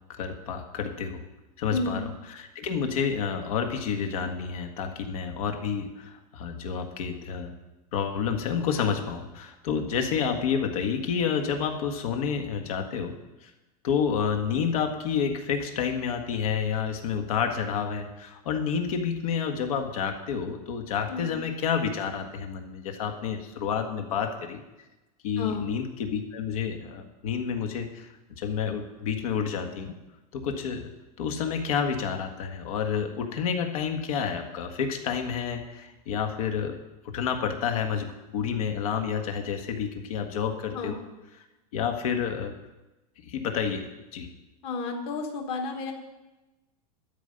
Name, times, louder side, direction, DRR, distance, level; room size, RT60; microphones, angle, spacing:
voice 1, 0.2-1.2 1.6-7.5 7.9-13.2 13.4-13.5 13.8-24.6 25.2-28.1 28.4-29.9 30.3-30.9 31.2-36.8 37.1-41.0 41.7-42.5 43.2-43.8 44.1-44.3, left 7 dB, 65° left, 5 dB, 1.7 m, -29 dB
voice 2, 1.7-2.0 21.1-21.4 25.4-25.7 40.7-41.1 44.6-45.9, left 3 dB, 30° left, 4 dB, 1.4 m, -31 dB
12.5 x 5.5 x 9.1 m, 1.0 s
supercardioid pair, 175°, 20 cm